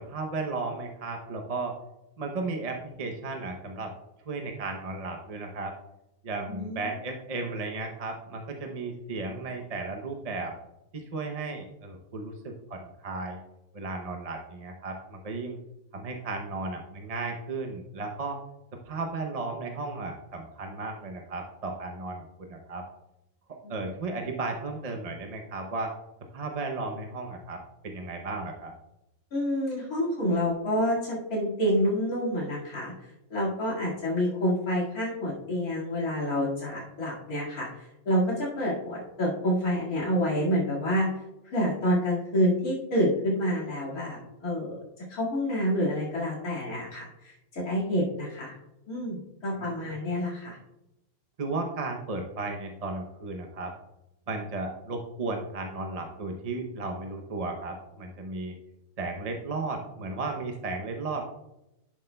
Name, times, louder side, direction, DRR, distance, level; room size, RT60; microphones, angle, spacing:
voice 1, 0.0-1.8 2.2-3.9 4.2-5.7 6.2-10.5 10.9-13.4 13.7-15.6 15.9-18.4 18.9-22.8 23.7-25.9 26.3-28.7 49.5-49.9 51.4-53.7 54.3-58.5 59.0-61.2, right 3 dB, 40° right, 2 dB, 0.5 m, -34 dB
voice 2, 6.5-6.9 23.6-23.8 29.3-32.9 33.3-41.1 41.5-48.6 48.9-50.6, equal, 75° left, -7 dB, 2.6 m, -28 dB
10.5 x 7.7 x 2.2 m, 0.90 s
omnidirectional pair, 1.5 m